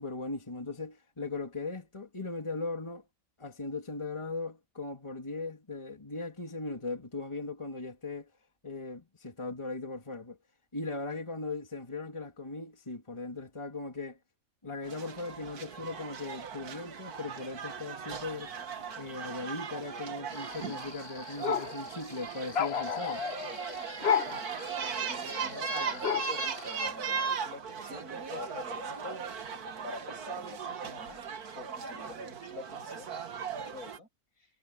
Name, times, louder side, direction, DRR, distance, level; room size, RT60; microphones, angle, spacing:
voice 1, 0.0-3.0 3.4-8.3 8.6-10.4 10.7-14.2 14.6-18.5 19.0-23.2, left 3 dB, 20° left, 2.2 m, -38 dB
sound 1, 14.8-34.0, right 6 dB, 85° right, 2.0 m, -38 dB
sound 2, 20.3-26.8, left 7 dB, 50° left, 1.0 m, -34 dB
voice 2, 24.3-24.6 25.0-29.2 29.8-31.2 31.5-34.1 34.4-34.5, left 3 dB, 70° left, 8.7 m, -46 dB
omnidirectional pair, 1.6 m